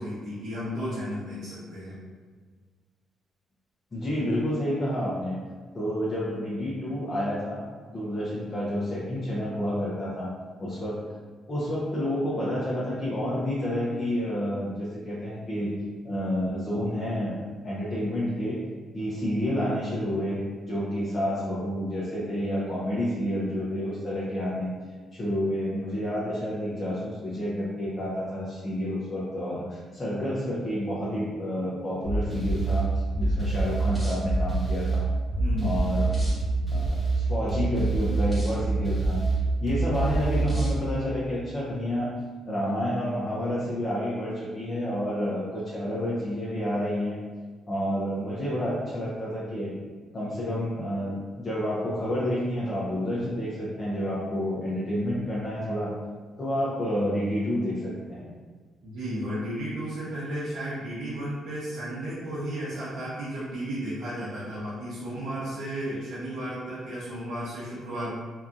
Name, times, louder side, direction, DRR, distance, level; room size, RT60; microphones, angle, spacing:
voice 1, 0.0-2.0 35.4-35.8 58.8-68.2, equal, 80° right, -10 dB, 0.8 m, -33 dB
voice 2, 3.9-5.4 5.7-10.3 10.6-11.0 11.5-15.7 16.0-18.6 18.9-24.7 25.1-32.9 33.2-35.0 35.6-36.1 36.7-39.2 39.6-42.1 42.5-47.2 47.7-49.8 50.1-55.9 56.4-58.3, equal, 35° left, -7 dB, 0.6 m, -29 dB
sound 1, 32.0-40.8, right 3 dB, 5° left, 0.9 m, -26 dB
2.7 x 2.3 x 2.5 m, 1.5 s
cardioid pair, 90°, 0 cm